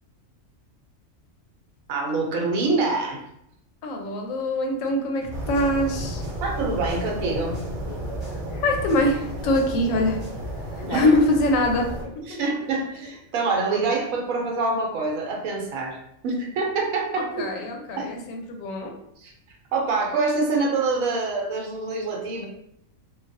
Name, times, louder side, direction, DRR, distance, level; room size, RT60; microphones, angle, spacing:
voice 1, 1.9-3.2 6.4-7.6 10.8-11.1 12.3-17.5 18.0-18.1 19.2-19.3 19.7-22.5, right 3 dB, 85° right, 0 dB, 1.1 m, -25 dB
voice 2, 3.8-6.2 8.6-10.2 10.8-11.9 12.2-12.4 17.1-18.9, left 1 dB, 80° left, 3 dB, 1.0 m, -23 dB
sound 1, 5.2-8.4 8.7-10.5, left 4 dB, 20° right, 1.1 m, -40 dB
sound 2, 5.3-12.0, right 1 dB, 60° right, 1.0 m, -33 dB
Male speech man speaking, 6.9-10.1 10.4-13.7, left 1 dB, 60° left, 0.5 m, -43 dB
3.2 x 2.2 x 2.5 m, 0.76 s
omnidirectional pair, 1.4 m